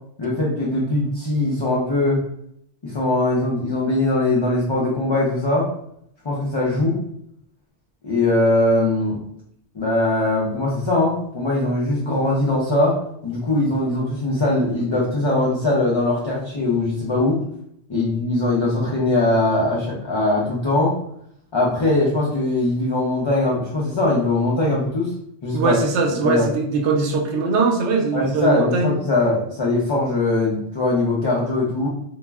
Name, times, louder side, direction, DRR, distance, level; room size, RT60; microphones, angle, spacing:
voice 1, 0.2-2.2 2.8-5.7 6.2-7.0 8.0-9.2 9.7-13.0 13.2-17.4 17.9-21.0 21.5-25.1 25.4-25.8 26.2-26.5 28.1-31.9, left 2 dB, 40° left, -6 dB, 0.4 m, -21 dB
voice 2, 25.5-28.9, right 4 dB, 85° right, 2 dB, 0.9 m, -21 dB
2.4 x 2.1 x 3.3 m, 0.70 s
omnidirectional pair, 1.1 m